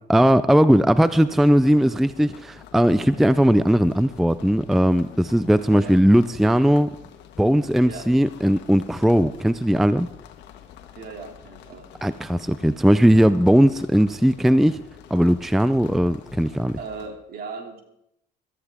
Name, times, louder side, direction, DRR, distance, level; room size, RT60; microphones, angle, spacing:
voice 1, 0.1-6.9 7.4-10.1 12.0-14.8 15.1-16.7, equal, ahead, 14 dB, 0.4 m, -18 dB
sound 1, 1.0-17.1, left 10 dB, 75° left, 1.5 m, -47 dB
voice 2, 5.6-5.9 7.8-8.0 10.9-11.9 16.8-17.8, right 4 dB, 55° right, 3 dB, 2.8 m, -37 dB
18.0 x 13.5 x 3.6 m, 0.80 s
cardioid pair, 105°, 18 cm